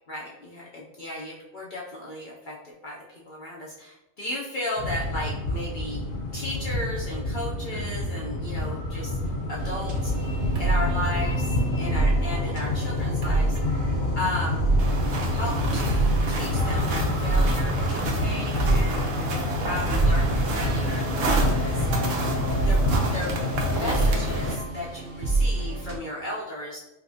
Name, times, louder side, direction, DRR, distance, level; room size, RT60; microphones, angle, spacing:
voice 1, 0.1-6.0 6.3-9.2 9.5-10.1 10.6-13.6 14.2-14.6 15.3-19.1 19.6-21.9 22.7-22.8 23.1-23.3 23.7-26.8, left 1 dB, 60° left, -4 dB, 0.5 m, -35 dB
sound 1, 4.8-24.6, left 1 dB, 80° left, 1.0 m, -28 dB
sound 2, 9.6-26.0, right 2 dB, 55° right, 0.7 m, -28 dB
sound 3, 14.8-24.5, right 2 dB, 70° right, 1.0 m, -32 dB
5.0 x 2.0 x 2.6 m, 0.99 s
omnidirectional pair, 1.4 m